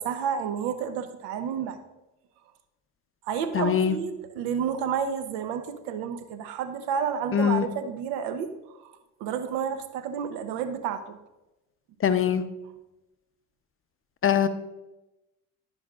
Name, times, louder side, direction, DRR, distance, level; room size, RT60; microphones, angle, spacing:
voice 1, 0.0-1.8 3.2-8.9 9.2-11.2, right 7 dB, 70° right, 9 dB, 0.9 m, -30 dB
voice 2, 3.5-4.0 7.3-7.7 12.0-12.4 14.2-14.5, left 8 dB, 30° left, 10 dB, 0.6 m, -22 dB
12.0 x 5.3 x 2.4 m, 0.99 s
hypercardioid pair, 65°, 43 cm